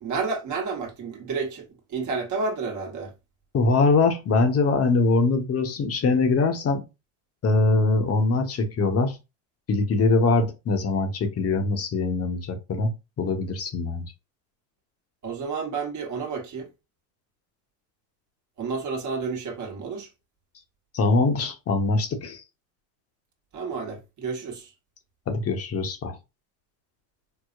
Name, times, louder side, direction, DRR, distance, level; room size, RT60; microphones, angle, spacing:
voice 1, 0.0-1.6 1.9-3.1 15.2-16.7 18.6-20.1 23.5-24.7, right 4 dB, 50° right, 1.1 m, -30 dB
voice 2, 3.5-6.8 7.4-9.2 9.7-14.0 20.9-22.4 25.3-26.2, left 3 dB, 40° left, 0.8 m, -23 dB
4.7 x 2.0 x 2.4 m
supercardioid pair, 100°, 39 cm